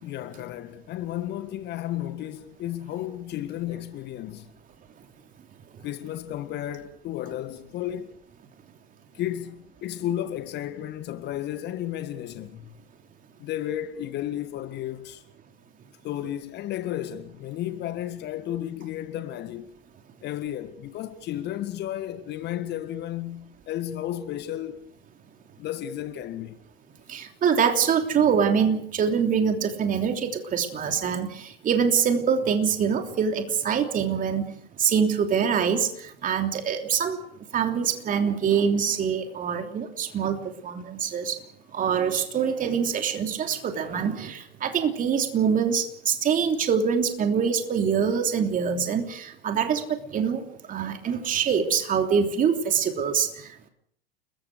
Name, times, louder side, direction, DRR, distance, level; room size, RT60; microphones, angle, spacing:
voice 1, 0.0-4.5 5.8-8.2 9.1-12.7 13.4-15.2 16.0-19.8 20.2-24.9 25.6-26.6, left 12 dB, 35° left, 1.7 m, -33 dB
voice 2, 27.1-41.4 41.7-53.7, right 7 dB, 30° right, 3.2 m, -25 dB
30.0 x 22.0 x 4.9 m
figure-of-eight pair, 85°, 29 cm